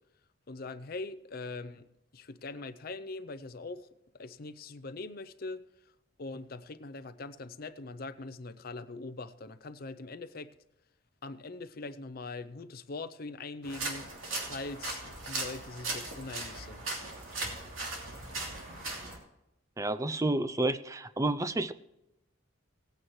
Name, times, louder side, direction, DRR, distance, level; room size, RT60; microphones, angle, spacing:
voice 1, 0.5-1.9 2.1-3.9 4.1-5.6 6.2-10.5 11.2-14.1 14.4-16.8, left 3 dB, 50° left, 12 dB, 0.6 m, -42 dB
sound 1, 13.6-19.2, right 2 dB, 85° right, 2.9 m, -38 dB
voice 2, 19.8-21.7, right 2 dB, 15° right, 13 dB, 0.4 m, -30 dB
18.5 x 9.1 x 3.1 m, 0.90 s
head